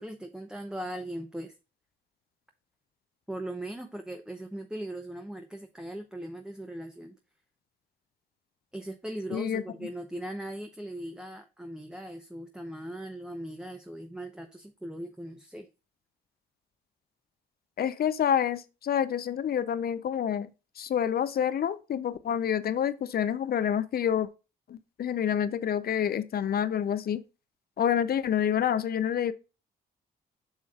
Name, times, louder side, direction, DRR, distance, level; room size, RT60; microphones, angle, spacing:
voice 1, 0.0-1.5 3.3-7.2 8.7-15.7, right 1 dB, 5° right, 0.7 m, -39 dB
voice 2, 9.3-9.6 17.8-20.5 20.8-24.3 24.7-27.2 27.8-29.3, left 9 dB, 55° left, 0.6 m, -28 dB
7.2 x 6.2 x 2.4 m
supercardioid pair, 60°, 19 cm